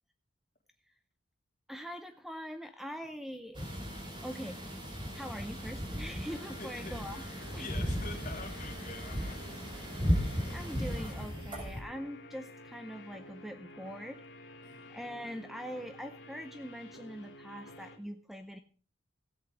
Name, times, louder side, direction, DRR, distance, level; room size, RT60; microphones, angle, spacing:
voice 1, 1.7-3.6 4.2-4.6 5.1-7.2 7.5-7.7 10.2-14.2 14.9-18.6, equal, ahead, 8 dB, 0.6 m, -43 dB
sound 1, 3.5-11.8, equal, 25° right, 3.0 m, -36 dB
sound 2, 6.3-18.0, left 1 dB, 65° left, 1.7 m, -51 dB
voice 2, 6.6-7.0 7.5-9.9 14.6-14.9, left 3 dB, 40° left, 1 dB, 2.9 m, -46 dB
16.5 x 8.2 x 4.8 m, 0.39 s
head